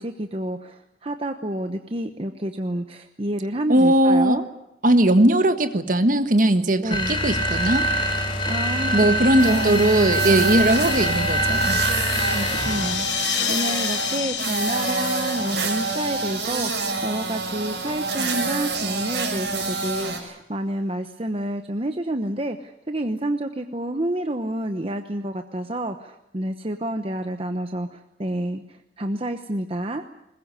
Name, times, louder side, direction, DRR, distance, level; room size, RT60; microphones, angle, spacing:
voice 1, 0.0-4.5 6.8-7.2 8.5-9.9 12.3-30.2, right 1 dB, 35° right, 6 dB, 1.0 m, -29 dB
voice 2, 3.7-4.4 4.8-7.9 8.9-11.8, right 1 dB, 50° right, 9 dB, 1.6 m, -19 dB
sound 1, 6.9-13.1, equal, 30° left, 4.5 m, -24 dB
sound 2, 9.4-20.2, right 3 dB, 75° right, 6.1 m, -28 dB
sound 3, 11.9-18.1, left 10 dB, 85° left, 1.4 m, -31 dB
21.0 x 21.0 x 9.7 m, 0.84 s
head